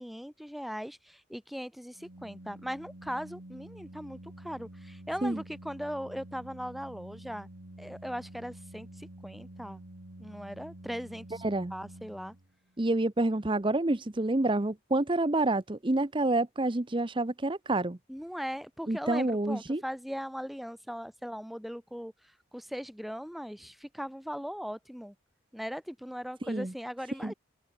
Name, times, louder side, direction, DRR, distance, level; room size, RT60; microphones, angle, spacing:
voice 1, 0.0-7.5 7.8-9.8 10.2-12.3 18.1-22.1 22.5-25.1 25.5-27.3, equal, ahead, 1.7 m, -39 dB
Organ, 1.9-12.7, right 1 dB, 65° right, 2.2 m, -49 dB
voice 2, 11.4-11.7 12.8-18.0 18.9-19.8 26.4-26.7 27.2-27.3, right 2 dB, 25° right, 0.8 m, -28 dB
open air
head